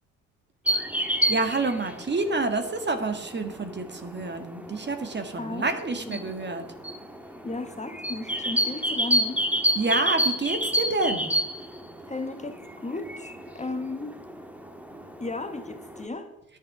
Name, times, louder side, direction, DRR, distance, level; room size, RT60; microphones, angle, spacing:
sound 1, 0.7-16.0, equal, 5° right, 1.6 m, -30 dB
voice 1, 1.3-6.6 9.8-11.3, right 3 dB, 25° right, 7 dB, 1.8 m, -28 dB
voice 2, 5.4-5.7 6.0-6.3 7.4-9.4 12.1-13.3 13.5-14.1 15.2-16.3, left 3 dB, 15° left, 7 dB, 1.4 m, -34 dB
10.5 x 9.3 x 6.1 m, 0.98 s
hypercardioid pair, 60°, 40 cm